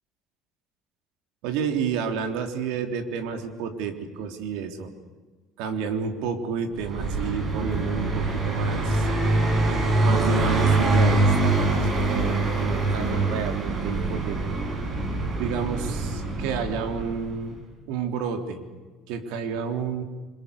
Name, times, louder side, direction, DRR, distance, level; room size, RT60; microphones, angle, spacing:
voice 1, 1.4-4.9 5.6-9.1 10.0-14.7 15.4-17.6 17.9-18.7 19.1-20.0, right 6 dB, 85° right, 6 dB, 3.5 m, -30 dB
Car passing by, 6.8-17.4, right 2 dB, 35° right, 6.0 m, -24 dB
28.0 x 26.0 x 6.8 m, 1.3 s
cardioid pair, 130°, 0 cm